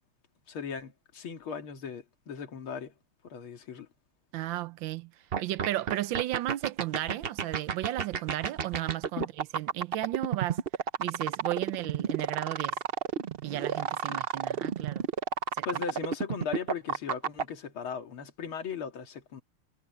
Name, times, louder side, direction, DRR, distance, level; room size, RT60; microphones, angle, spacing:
voice 1, 0.5-2.9 3.2-3.9 9.2-9.3 14.1-14.2 15.7-19.4, left 6 dB, 70° left, 2.8 m, -38 dB
voice 2, 4.3-5.1 5.4-10.6 11.0-12.8 13.4-15.0 15.6-15.8, right 14 dB, 70° right, 1.3 m, -34 dB
sound 1, 5.3-17.4, right 7 dB, 90° right, 0.5 m, -30 dB
omnidirectional pair, 2.4 m